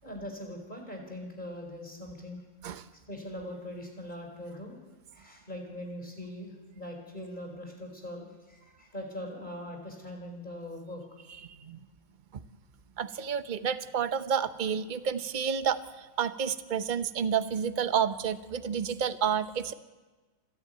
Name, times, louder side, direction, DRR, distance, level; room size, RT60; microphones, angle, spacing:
voice 1, 0.0-2.4 2.9-4.8 5.1-11.2, left 1 dB, 20° left, 2 dB, 4.5 m, -41 dB
voice 2, 11.4-11.8 12.3-12.4 13.0-19.7, right 7 dB, 50° right, 11 dB, 0.5 m, -30 dB
27.5 x 10.5 x 9.2 m, 1.3 s
omnidirectional pair, 2.1 m